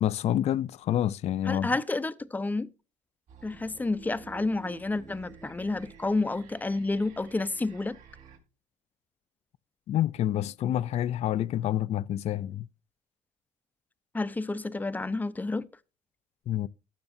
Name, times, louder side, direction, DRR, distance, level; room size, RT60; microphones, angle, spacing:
voice 1, 0.0-1.7 9.9-12.7 16.5-16.7, left 11 dB, 55° left, 0.4 m, -28 dB
voice 2, 1.5-2.7 3.4-8.0 14.1-15.7, left 2 dB, 10° left, 0.7 m, -30 dB
sound 1, 3.3-8.4, right 6 dB, 65° right, 6.4 m, -51 dB
19.5 x 6.7 x 2.6 m
cardioid pair, 115°, 14 cm